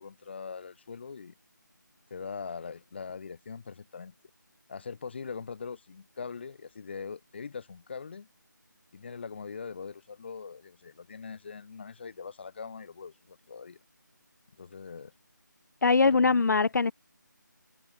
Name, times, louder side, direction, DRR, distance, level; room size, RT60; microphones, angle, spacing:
voice 1, 0.0-1.3 2.1-4.1 4.7-8.3 8.9-13.8 14.6-15.1 16.0-16.4, left 5 dB, 35° left, 2.0 m, -42 dB
voice 2, 15.8-16.9, left 4 dB, 65° left, 0.4 m, -22 dB
figure-of-eight pair, 165°, 11 cm